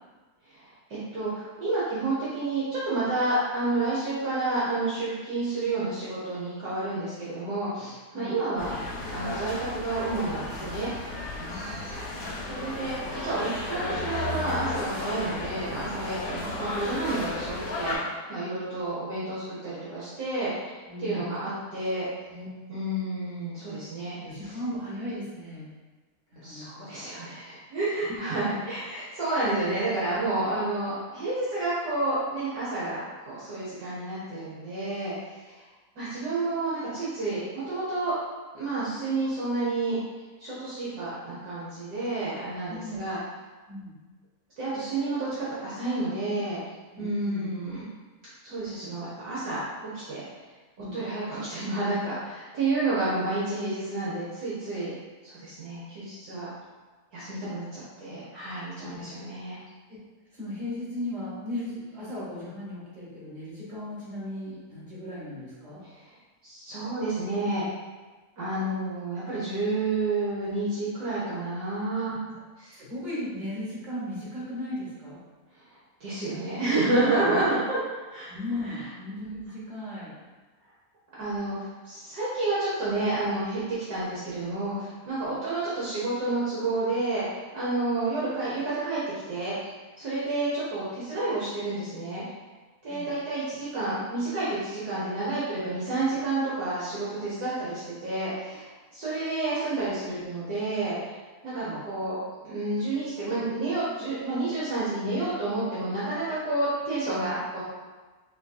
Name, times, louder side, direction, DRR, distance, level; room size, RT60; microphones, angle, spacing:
voice 1, 0.9-8.8 9.1-11.2 11.5-12.0 12.5-20.8 21.0-22.1 22.7-24.2 24.4-24.6 26.4-35.1 35.4-35.6 36.0-38.1 38.5-40.0 40.4-43.2 44.6-46.6 47.0-47.8 48.4-49.6 50.1-50.2 50.9-54.9 55.2-56.5 57.1-59.6 65.9-66.0 66.4-67.6 68.4-72.2 72.6-72.8 76.0-78.3 78.6-78.8 81.2-89.0 89.3-89.5 90.0-92.2 92.8-101.0 101.4-102.2 102.4-107.6, right 2 dB, 70° right, -9 dB, 1.4 m, -30 dB
sound 1, 8.6-18.0, left 2 dB, 70° left, 1.3 m, -34 dB
voice 2, 11.3-11.9 20.9-21.2 22.3-22.5 24.2-25.7 26.4-26.9 28.0-28.3 42.7-43.1 43.7-44.0 46.9-47.5 50.8-51.0 58.8-59.2 60.3-65.8 72.7-75.2 77.2-77.4 78.3-80.2 92.9-93.1 101.6-101.8, left 1 dB, 30° right, -8 dB, 1.4 m, -37 dB
4.8 x 2.7 x 2.3 m, 1.3 s
omnidirectional pair, 1.7 m